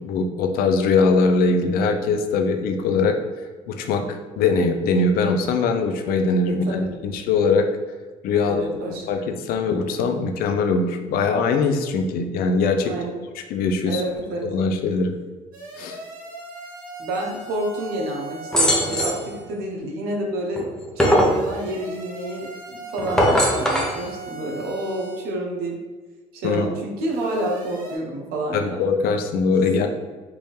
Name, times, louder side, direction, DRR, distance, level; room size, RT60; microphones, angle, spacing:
voice 1, 0.0-3.2 3.7-7.7 8.2-12.9 13.5-14.0 14.5-15.1 15.8-16.0 26.4-26.7 28.5-29.9, left 4 dB, 65° left, 5 dB, 0.5 m, -21 dB
voice 2, 6.5-6.9 8.4-9.0 12.8-13.1 13.9-14.4 17.0-20.6 21.0-25.7 26.3-28.9, right 1 dB, 75° right, 0 dB, 0.7 m, -29 dB
sound 1, 15.5-19.5 21.0-25.3 27.1-28.0, right 2 dB, 55° right, 1.3 m, -39 dB
sound 2, 18.5-19.2 20.6-21.4 23.0-24.0, equal, 5° left, 0.8 m, -19 dB
3.4 x 2.6 x 3.3 m, 1.3 s
hypercardioid pair, 65°, 16 cm